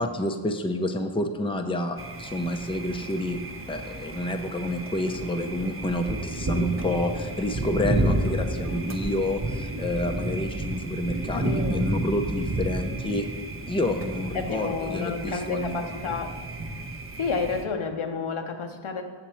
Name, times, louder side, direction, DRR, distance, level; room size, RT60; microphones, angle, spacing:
voice 1, 0.0-3.4 3.7-13.3 13.6-15.8, left 1 dB, 10° left, 5 dB, 0.6 m, -29 dB
Thunder, 2.0-17.6, right 1 dB, 25° right, 0.7 m, -31 dB
voice 2, 11.3-11.9 14.3-16.3 17.2-19.0, left 5 dB, 75° left, 4 dB, 0.9 m, -30 dB
7.3 x 6.7 x 4.3 m, 1.5 s
cardioid pair, 60°, 49 cm